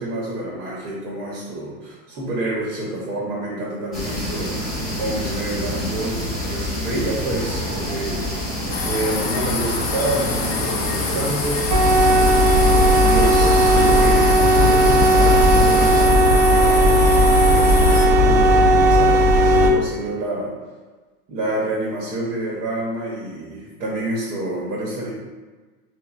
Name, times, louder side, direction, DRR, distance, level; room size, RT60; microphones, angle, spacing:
voice 1, 0.0-4.6 5.0-8.2 8.8-11.7 12.2-17.1 17.4-20.5 21.3-25.1, right 1 dB, 70° right, -4 dB, 0.9 m, -28 dB
sound 1, 3.9-16.1, equal, ahead, 0.6 m, -27 dB
sound 2, 8.7-18.1, left 4 dB, 40° left, 0.5 m, -28 dB
sound 3, 11.7-19.7, equal, 55° right, 0.6 m, -15 dB
3.0 x 2.1 x 2.4 m, 1.3 s
hypercardioid pair, 120°, 47 cm